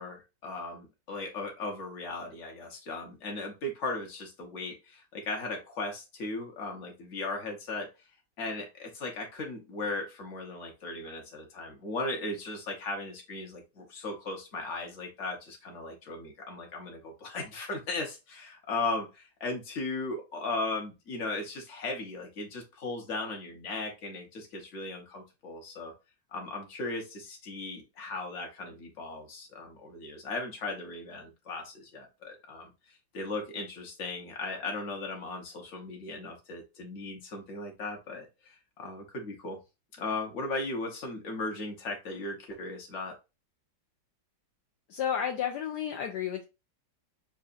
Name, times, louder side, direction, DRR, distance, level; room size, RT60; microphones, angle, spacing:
voice 1, 0.0-7.9 8.4-25.9 26.3-32.7 33.1-38.3 38.8-39.6 40.0-43.1, left 2 dB, 45° left, 1.3 m, -37 dB
voice 2, 44.9-46.4, left 8 dB, 70° left, 1.1 m, -31 dB
6.7 x 2.5 x 2.5 m
omnidirectional pair, 2.0 m